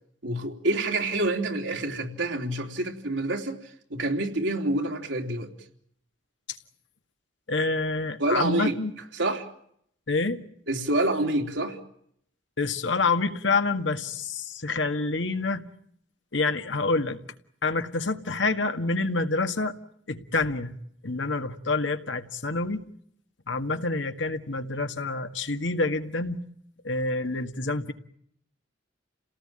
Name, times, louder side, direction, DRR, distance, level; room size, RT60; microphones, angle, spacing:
voice 1, 0.2-3.6 3.9-5.5 8.2-8.8 9.2-9.5 10.7-11.8, right 2 dB, 80° right, 3 dB, 3.4 m, -27 dB
voice 2, 7.5-8.9 10.1-10.4 12.6-15.6 16.3-17.2 17.6-19.7 20.1-20.8 21.0-22.9 23.5-26.4 26.8-27.9, left 3 dB, 80° left, 7 dB, 1.8 m, -27 dB
29.5 x 18.0 x 8.9 m, 0.71 s
head